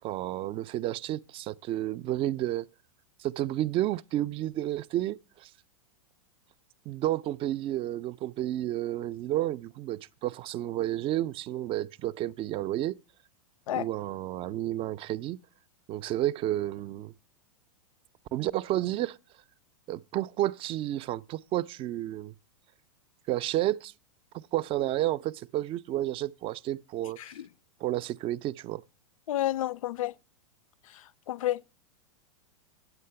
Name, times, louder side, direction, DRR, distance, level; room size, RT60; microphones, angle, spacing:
voice 1, 0.0-2.7 3.2-5.5 6.9-13.0 13.7-15.4 15.9-17.1 18.3-19.2 19.9-22.3 23.3-23.9 24.3-27.2 27.8-28.8, right 14 dB, 30° right, 0.4 m, -31 dB
voice 2, 29.3-30.1 31.3-31.6, left 13 dB, 75° left, 0.4 m, -29 dB
9.5 x 7.8 x 5.6 m
hypercardioid pair, 110°, 17 cm